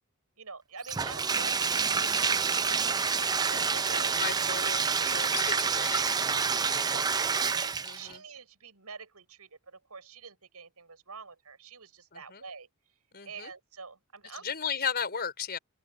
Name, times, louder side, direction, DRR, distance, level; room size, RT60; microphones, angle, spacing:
voice 1, 0.4-4.6 5.3-5.6 6.6-12.7 13.3-14.5, right 5 dB, 90° right, 5.9 m, -47 dB
Bathtub (filling or washing), 0.8-8.1, right 5 dB, 20° right, 0.4 m, -28 dB
voice 2, 4.2-4.9 5.1-6.0 7.8-8.2 12.3-12.4 13.1-13.5 14.4-15.6, left 7 dB, 45° left, 4.9 m, -34 dB
open air
head